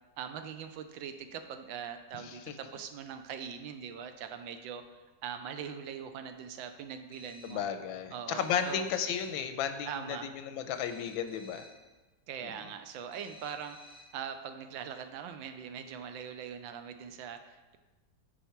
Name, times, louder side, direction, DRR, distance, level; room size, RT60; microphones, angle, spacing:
voice 1, 0.2-4.8 5.2-7.6 8.1-8.9 9.9-10.3 12.3-17.8, right 7 dB, 85° right, 8 dB, 1.4 m, -42 dB
voice 2, 2.1-2.5 7.4-11.7 12.4-12.5, left 8 dB, 85° left, 9 dB, 1.4 m, -34 dB
sound 1, 7.1-7.7 8.4-9.5 10.7-11.9 13.1-14.2, left 1 dB, 60° right, 2.6 m, -55 dB
10.0 x 4.5 x 4.5 m, 1.2 s
omnidirectional pair, 2.1 m